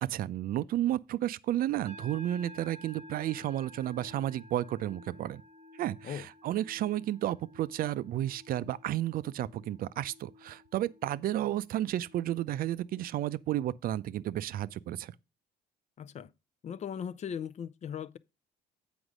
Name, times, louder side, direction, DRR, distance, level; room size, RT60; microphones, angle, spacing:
voice 1, 0.0-5.4 5.7-15.1, right 13 dB, 60° right, 0.5 m, -32 dB
sound 1, 1.8-13.3, left 2 dB, 40° right, 0.9 m, -53 dB
voice 2, 16.0-16.3 16.6-18.2, left 8 dB, 45° left, 0.5 m, -38 dB
8.1 x 5.1 x 4.9 m
cardioid pair, 110°, 17 cm